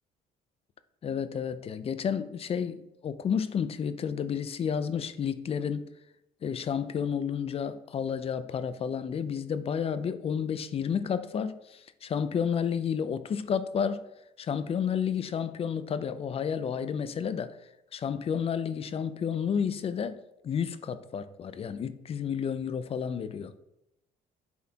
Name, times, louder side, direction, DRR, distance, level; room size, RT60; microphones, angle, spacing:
voice 1, 1.0-5.9 6.4-14.0 14.4-17.6 17.9-20.2 20.4-23.5, left 7 dB, 35° left, 0.4 m, -31 dB
9.4 x 4.2 x 2.8 m
cardioid pair, 110°, 17 cm